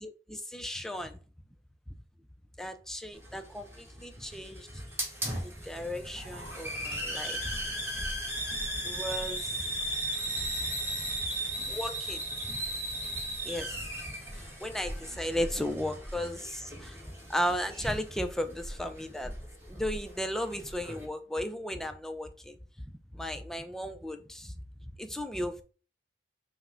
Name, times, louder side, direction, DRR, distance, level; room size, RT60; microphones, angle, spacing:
voice 1, 0.0-1.2 2.6-4.7 5.4-7.6 8.8-9.7 10.4-10.8 11.7-12.2 13.1-13.8 14.6-17.0 17.3-19.3 19.7-22.6 23.1-24.5 25.0-25.6, equal, 5° left, 0.4 m, -35 dB
Hiss, 3.1-21.0, right 1 dB, 15° right, 1.4 m, -37 dB
5.7 x 2.1 x 3.7 m
head